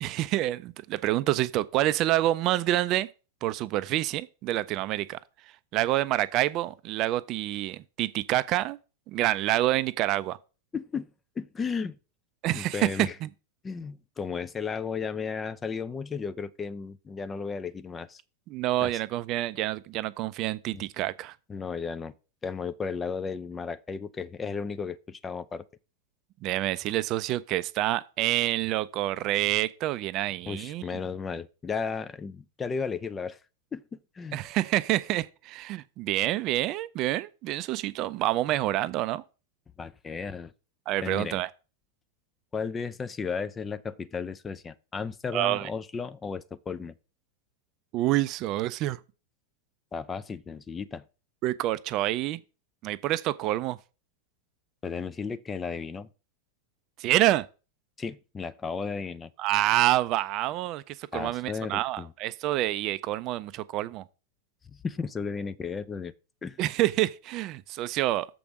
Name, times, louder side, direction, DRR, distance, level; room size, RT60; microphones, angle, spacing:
voice 1, 0.0-3.1 3.4-5.2 5.7-8.8 9.1-10.4 12.4-13.3 18.5-21.4 26.4-31.0 34.3-39.2 40.9-41.5 45.3-45.7 47.9-49.0 51.4-52.4 52.8-53.8 57.0-57.5 59.4-64.0 66.6-68.3, right 15 dB, 40° right, 0.5 m, -27 dB
voice 2, 10.7-11.1 11.4-12.0 12.5-13.1 13.6-18.2 18.8-18.9 20.7-20.8 21.5-22.1 22.4-25.6 30.5-33.4 33.7-33.8 34.2-34.4 39.8-40.5 41.0-41.4 42.5-46.9 49.9-51.0 54.8-56.1 58.0-59.3 61.1-62.1 64.8-66.1 66.4-66.6, left 5 dB, 20° left, 0.5 m, -34 dB
6.9 x 5.0 x 6.2 m
figure-of-eight pair, 90°, 0 cm